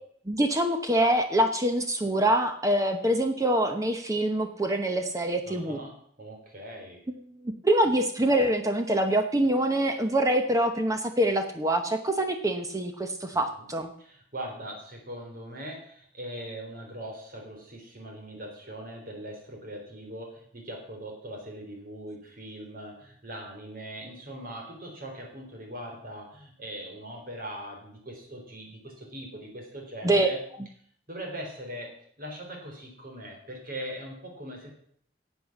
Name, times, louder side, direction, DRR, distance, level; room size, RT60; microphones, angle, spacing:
voice 1, 0.3-5.8 7.6-13.9 30.0-30.3, right 1 dB, 20° right, 6 dB, 0.9 m, -25 dB
voice 2, 5.5-7.1 13.3-13.7 14.0-30.4 31.1-34.7, right 1 dB, 50° right, 2 dB, 3.8 m, -41 dB
11.0 x 8.1 x 7.3 m, 0.63 s
head